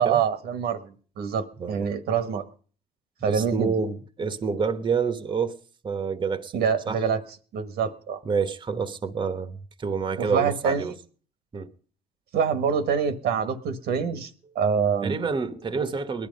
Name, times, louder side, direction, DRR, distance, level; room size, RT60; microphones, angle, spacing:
voice 1, 0.0-2.4 3.2-3.7 6.5-7.2 7.5-8.2 10.2-10.9 12.3-14.3 14.5-15.1, right 7 dB, 70° right, 1.5 m, -25 dB
voice 2, 3.3-5.6 5.8-7.0 8.2-10.9 11.5-11.7 15.0-16.3, right 5 dB, 25° right, 1.2 m, -28 dB
19.5 x 11.5 x 5.4 m
cardioid pair, 110°, 17 cm